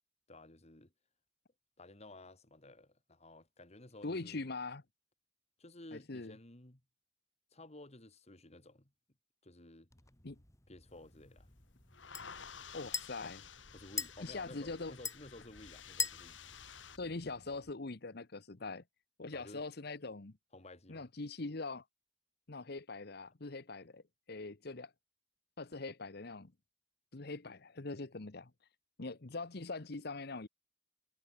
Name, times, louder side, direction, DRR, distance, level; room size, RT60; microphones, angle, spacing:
voice 1, 0.3-0.9 1.8-4.4 5.6-6.8 7.5-8.9 9.4-9.9 10.7-11.5 13.7-16.4 19.3-19.6 20.5-21.0, left 2 dB, 35° left, 2.6 m, -54 dB
voice 2, 4.0-4.8 5.9-6.3 10.2-10.4 12.7-13.5 14.2-14.9 17.0-18.8 19.2-20.3 20.9-21.8 22.5-24.0 24.3-24.9 25.6-26.5 27.1-28.5 29.0-30.5, left 3 dB, 60° left, 1.1 m, -42 dB
sound 1, 9.9-17.7, left 5 dB, 15° left, 2.1 m, -45 dB
sound 2, 10.9-17.0, left 7 dB, 85° left, 2.3 m, -53 dB
head